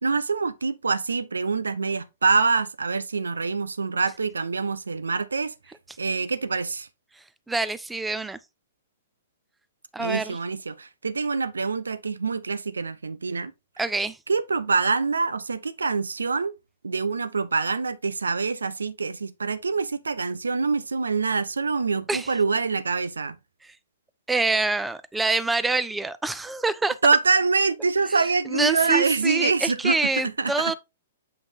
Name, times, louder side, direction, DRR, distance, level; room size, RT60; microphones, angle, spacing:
voice 1, 0.0-5.5 6.0-6.9 10.0-13.5 14.3-16.5 16.8-23.4 27.0-30.0 30.4-30.7, right 4 dB, 85° right, 0.7 m, -25 dB
voice 2, 7.5-8.4 9.9-10.4 13.8-14.2 22.1-22.3 24.3-27.0 28.5-30.7, right 3 dB, 10° right, 0.6 m, -26 dB
8.0 x 5.2 x 2.9 m
hypercardioid pair, 115°, 0 cm